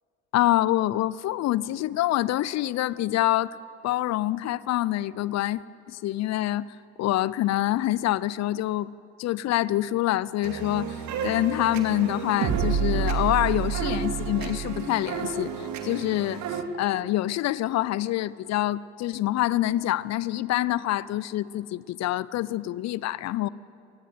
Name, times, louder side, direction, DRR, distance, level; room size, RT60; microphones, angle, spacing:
voice 1, 0.3-3.6 3.8-5.6 5.9-8.9 9.2-23.5, left 14 dB, 50° left, 20 dB, 0.6 m, -26 dB
sound 1, 10.4-16.6, right 7 dB, 55° right, 2.5 m, -29 dB
25.5 x 18.5 x 9.2 m, 2.7 s
hypercardioid pair, 55°, 33 cm